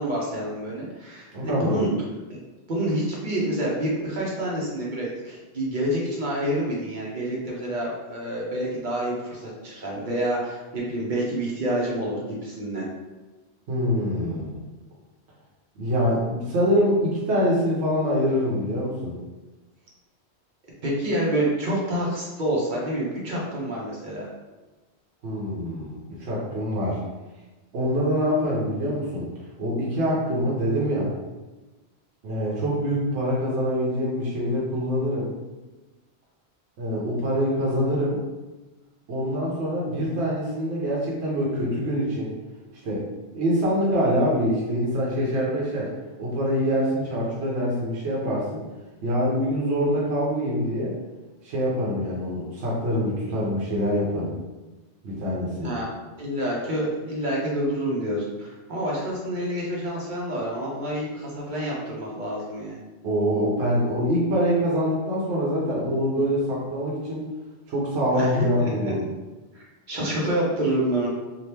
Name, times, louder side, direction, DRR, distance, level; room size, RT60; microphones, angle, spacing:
voice 1, 0.0-1.9 2.3-2.4 2.7-12.9 20.8-24.3 55.6-55.9 56.2-62.8 68.1-68.9 69.5-71.1, right 1 dB, 50° right, -4 dB, 0.8 m, -28 dB
voice 2, 1.3-1.8 13.7-14.6 15.8-19.1 25.2-27.0 27.7-29.3 29.6-31.1 32.2-35.3 36.8-38.2 39.1-42.3 42.8-43.0 43.3-45.9 46.2-48.6 49.0-50.9 51.4-54.3 55.0-55.7 63.0-67.3 67.7-69.0, equal, 80° right, -5 dB, 1.0 m, -25 dB
2.8 x 2.5 x 3.3 m, 1.2 s
omnidirectional pair, 1.1 m